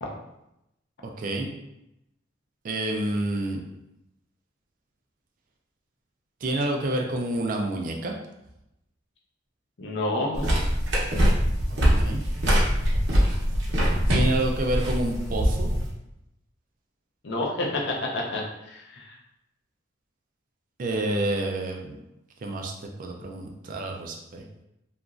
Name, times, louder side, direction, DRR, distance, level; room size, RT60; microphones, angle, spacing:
voice 1, 1.0-1.5 2.6-3.6 6.4-8.1 11.7-12.2 14.1-15.7 20.8-22.0 22.4-22.7 23.0-24.4, right 1 dB, 40° right, 2 dB, 0.3 m, -28 dB
voice 2, 9.8-10.5 17.2-19.2, left 2 dB, 60° left, -1 dB, 0.5 m, -29 dB
sound 1, 10.3-15.9, equal, 60° right, 0.7 m, -23 dB
2.9 x 2.4 x 2.4 m, 0.86 s
head